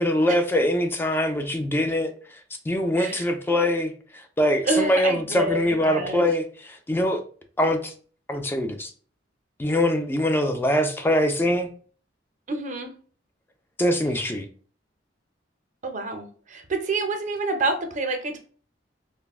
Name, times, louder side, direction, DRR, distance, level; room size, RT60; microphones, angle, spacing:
voice 1, 0.0-2.1 2.7-7.2 7.6-7.9 8.3-8.9 9.6-11.7 13.8-14.5, left 1 dB, 10° left, 0.3 m, -23 dB
voice 2, 4.7-6.2 12.5-12.9 15.8-18.4, right 2 dB, 45° right, 0.5 m, -27 dB
3.4 x 2.0 x 2.3 m
head